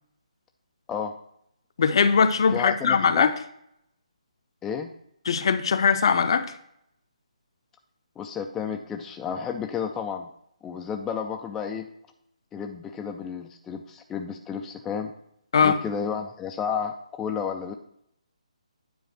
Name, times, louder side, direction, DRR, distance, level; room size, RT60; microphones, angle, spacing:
voice 1, 1.8-3.3 5.3-6.5 15.5-15.8, left 6 dB, 45° left, 10 dB, 0.6 m, -20 dB
voice 2, 2.5-3.3 4.6-4.9 8.2-10.3 10.6-11.9 12.5-15.1 15.6-17.8, left 7 dB, 10° left, 4 dB, 0.3 m, -31 dB
9.5 x 3.8 x 6.0 m, 0.74 s
figure-of-eight pair, 145°, 4 cm